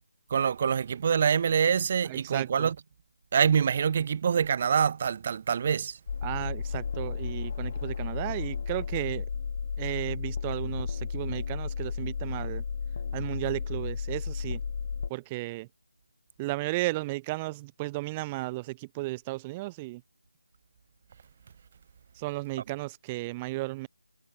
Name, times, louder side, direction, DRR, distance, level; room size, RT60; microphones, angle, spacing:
voice 1, 0.3-2.8 3.3-6.0, right 7 dB, 30° right, 3.8 m, -25 dB
voice 2, 2.0-2.7 6.2-9.3 9.8-12.6 13.1-14.6 15.1-15.7 16.4-20.0 22.2-23.9, right 20 dB, 15° right, 3.8 m, -34 dB
sound 1, 6.1-15.1, left 6 dB, 35° left, 2.6 m, -33 dB
figure-of-eight pair, 170°, 0 cm